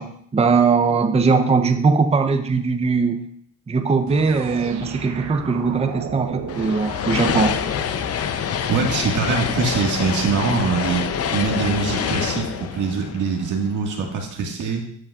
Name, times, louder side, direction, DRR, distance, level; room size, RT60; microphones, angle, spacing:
voice 1, 0.0-3.3 3.7-7.6, right 4 dB, 20° right, 7 dB, 0.7 m, -20 dB
sound 1, 4.1-8.0, right 7 dB, 65° right, 1.0 m, -34 dB
sound 2, 6.5-13.9, left 7 dB, 55° left, 0.7 m, -26 dB
voice 2, 8.7-11.1 11.3-14.8, right 5 dB, 85° right, 0 dB, 1.8 m, -23 dB
14.5 x 5.5 x 2.4 m, 0.64 s
cardioid pair, 90°, 30 cm